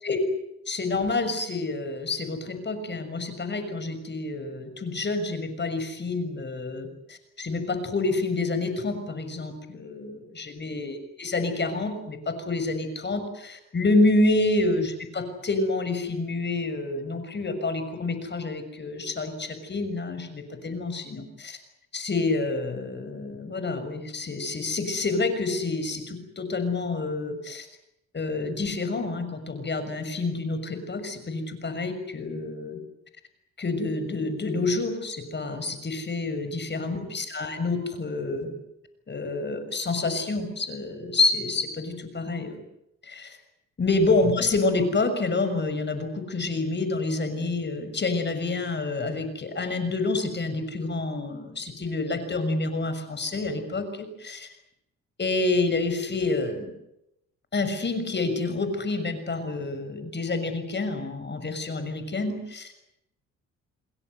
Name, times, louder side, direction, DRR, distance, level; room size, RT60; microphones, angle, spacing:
voice 1, 0.7-21.6 21.9-27.7 28.1-32.8 33.6-38.5 39.1-42.6 43.0-43.4 43.8-54.5 55.2-56.7 57.5-62.7, left 3 dB, 35° left, 10 dB, 6.6 m, -28 dB
29.5 x 20.5 x 8.1 m, 0.81 s
cardioid pair, 90°, 30 cm